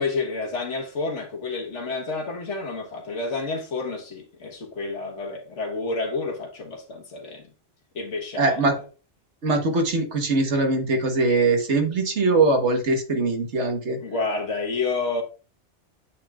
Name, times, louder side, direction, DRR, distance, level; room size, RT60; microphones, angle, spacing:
voice 1, 0.0-7.5 7.9-8.8 14.0-15.2, left 3 dB, 85° left, 1.6 m, -29 dB
voice 2, 8.4-8.8 9.4-14.0, right 3 dB, 75° right, 1.6 m, -22 dB
8.3 x 6.1 x 2.4 m
omnidirectional pair, 1.2 m